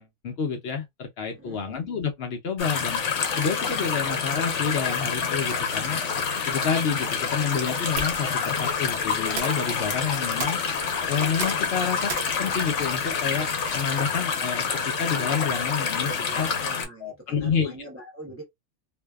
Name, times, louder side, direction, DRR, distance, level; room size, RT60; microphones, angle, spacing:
voice 1, 0.0-3.0 3.4-6.0 6.5-10.6 11.1-12.1 12.4-13.5 13.7-16.5 17.0-17.7, left 6 dB, 65° left, 0.8 m, -29 dB
voice 2, 1.3-1.7 16.0-18.4, right 1 dB, 15° right, 0.6 m, -43 dB
sound 1, 2.6-16.8, left 6 dB, 80° left, 1.0 m, -27 dB
sound 2, 7.9-14.0, right 4 dB, 65° right, 0.8 m, -40 dB
sound 3, 9.2-15.7, right 2 dB, 35° right, 1.0 m, -49 dB
2.6 x 2.1 x 2.2 m
omnidirectional pair, 1.2 m